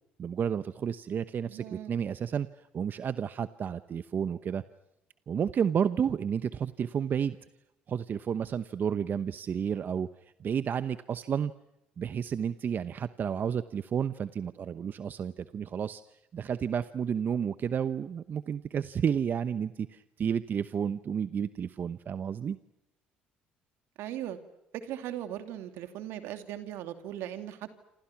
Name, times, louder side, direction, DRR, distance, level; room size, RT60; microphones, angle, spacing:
voice 1, 0.2-2.5 2.7-4.6 5.3-7.4 7.9-10.1 10.4-11.5 12.0-16.0 16.3-22.6, right 7 dB, 50° right, 13 dB, 0.9 m, -31 dB
voice 2, 1.5-1.9 24.0-24.4 24.7-27.7, right 11 dB, 75° right, 8 dB, 2.7 m, -38 dB
27.5 x 27.5 x 6.0 m, 0.88 s
supercardioid pair, 70°, 4 cm